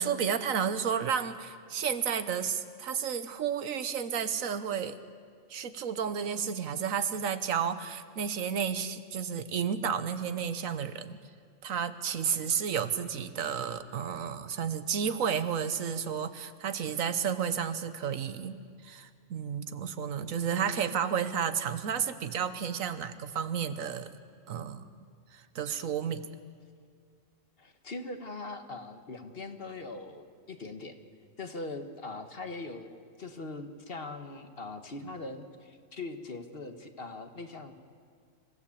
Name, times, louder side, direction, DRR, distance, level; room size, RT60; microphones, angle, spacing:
voice 1, 0.0-5.0 5.5-11.2 11.6-18.5 18.8-24.1 24.5-24.9 25.3-26.2, right 7 dB, 90° right, 11 dB, 1.4 m, -32 dB
voice 2, 27.6-31.0 31.4-32.9 33.2-37.7, left 3 dB, 45° left, 7 dB, 1.5 m, -41 dB
26.5 x 15.5 x 8.5 m, 2.1 s
omnidirectional pair, 1.4 m